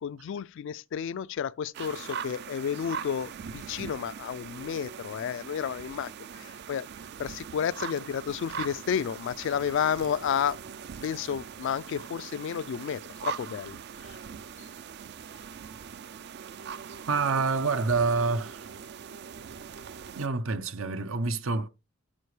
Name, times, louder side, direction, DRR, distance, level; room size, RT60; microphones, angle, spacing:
voice 1, 0.0-6.9 7.2-10.6 11.0-14.2 14.6-14.7, left 8 dB, 60° left, 0.3 m, -31 dB
sound 1, 1.7-20.3, right 7 dB, 55° right, 0.4 m, -41 dB
voice 2, 17.1-18.7 20.1-21.7, right 4 dB, 75° right, 0.7 m, -27 dB
12.5 x 5.1 x 3.2 m
head